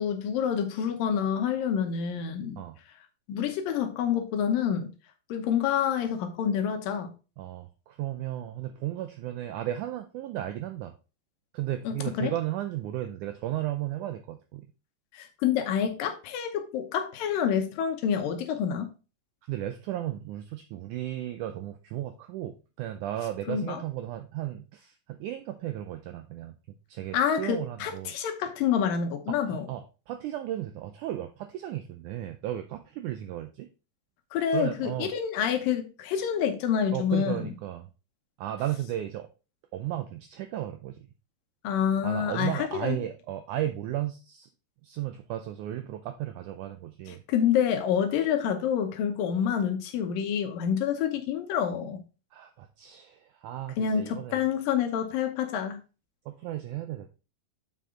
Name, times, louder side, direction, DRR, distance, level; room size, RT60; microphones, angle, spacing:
voice 1, 0.0-2.6 3.3-4.9 5.3-7.1 11.9-12.3 15.1-18.9 23.5-23.8 27.1-29.7 34.3-37.5 41.6-43.0 47.3-52.0 53.8-55.8, left 8 dB, 75° left, 2.5 m, -27 dB
voice 2, 7.4-10.9 11.5-14.7 19.5-28.1 29.3-33.7 34.5-35.1 36.9-37.9 38.4-39.3 39.7-41.1 42.0-44.5 44.8-47.2 52.3-54.4 56.3-57.1, right 13 dB, 85° right, 1.7 m, -35 dB
7.6 x 5.4 x 3.7 m
omnidirectional pair, 4.2 m